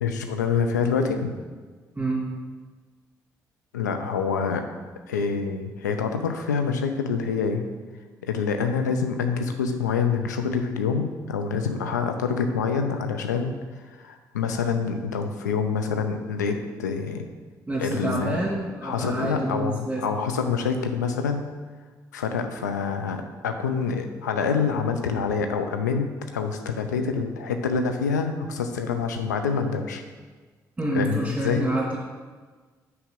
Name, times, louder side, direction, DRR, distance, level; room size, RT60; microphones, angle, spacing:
voice 1, 0.0-1.3 3.7-4.6 5.1-7.7 8.2-13.5 13.8-17.3 17.8-18.4 18.8-21.4 22.1-30.0 30.9-31.7, left 5 dB, 90° left, 6 dB, 0.5 m, -26 dB
voice 2, 17.7-20.0 30.8-32.0, right 2 dB, 15° right, -7 dB, 2.3 m, -28 dB
6.3 x 4.7 x 5.2 m, 1.4 s
hypercardioid pair, 45°, 9 cm